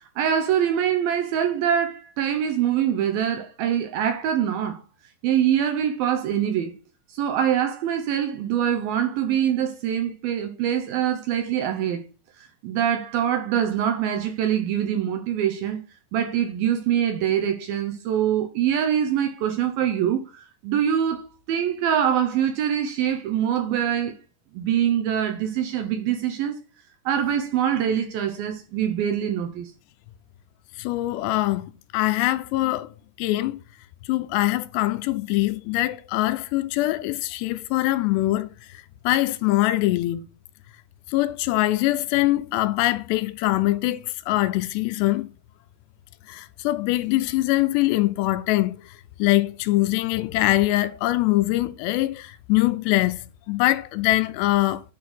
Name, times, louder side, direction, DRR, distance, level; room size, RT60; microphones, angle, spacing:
voice 1, 0.2-4.8 5.2-6.8 7.1-12.0 12.4-15.8 16.1-24.1 24.5-26.6 27.1-29.7, right 9 dB, 75° right, 2.3 m, -24 dB
voice 2, 30.8-32.9 33.2-33.6 34.0-38.5 39.0-40.2 41.1-45.3 46.3-54.8, left 17 dB, 80° left, 2.6 m, -23 dB
10.5 x 4.3 x 6.1 m
omnidirectional pair, 5.0 m